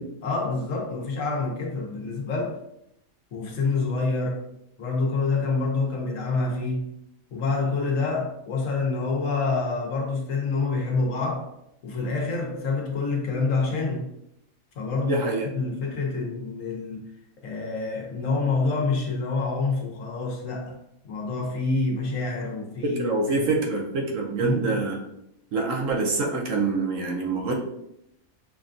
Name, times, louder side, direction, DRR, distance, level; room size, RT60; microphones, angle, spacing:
voice 1, 0.0-2.6 3.3-4.4 4.8-6.9 7.3-11.5 11.8-14.1 14.8-15.2 15.5-17.0 17.4-20.8 21.0-23.0 23.3-23.5 24.4-24.8, left 3 dB, 65° left, 0 dB, 1.2 m, -27 dB
voice 2, 15.0-15.5 22.8-25.0 25.5-27.5, right 3 dB, 65° right, 1 dB, 1.0 m, -25 dB
5.9 x 2.3 x 2.5 m, 0.79 s
omnidirectional pair, 1.5 m